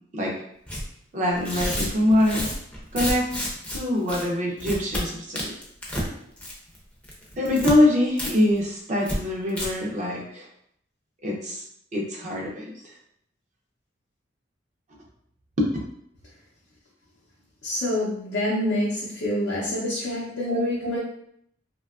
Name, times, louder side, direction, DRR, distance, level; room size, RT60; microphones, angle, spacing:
Tearing, 0.7-0.8 1.4-3.8 4.1-4.2 4.6-5.0 5.4-6.1 6.4-6.8 7.0-7.7 8.2-8.3 8.6-8.7 9.0-9.2 9.5-9.7, equal, 5° left, 0.5 m, -30 dB
voice 1, 1.1-2.5 2.9-5.5 7.4-10.5 11.2-11.6 11.9-12.9 15.6-15.7 20.5-21.0, left 1 dB, 40° right, -2 dB, 0.5 m, -24 dB
voice 2, 17.6-21.0, left 1 dB, 75° left, -5 dB, 0.5 m, -27 dB
2.7 x 2.2 x 2.3 m, 0.71 s
head